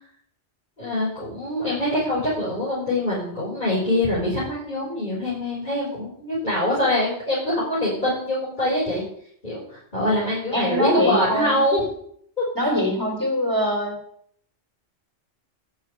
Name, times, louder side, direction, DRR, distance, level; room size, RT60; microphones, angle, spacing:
voice 1, 0.8-9.0 9.4-11.8 12.4-12.5, left 1 dB, 40° left, -10 dB, 6.1 m, -24 dB
voice 2, 10.5-11.5 12.6-14.0, equal, 15° right, 2 dB, 3.7 m, -23 dB
12.0 x 6.2 x 9.3 m, 0.64 s
omnidirectional pair, 1.2 m